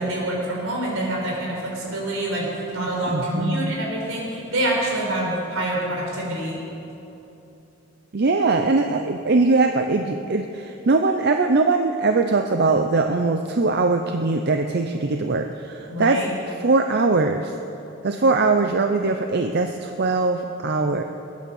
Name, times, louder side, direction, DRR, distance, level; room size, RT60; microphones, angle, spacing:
voice 1, 0.0-6.6 15.9-16.3, right 1 dB, 70° right, -2 dB, 4.9 m, -26 dB
voice 2, 3.1-3.8 8.1-16.2 16.6-17.5 18.0-21.0, right 3 dB, 50° right, 5 dB, 0.6 m, -21 dB
21.0 x 9.4 x 7.1 m, 3.0 s
head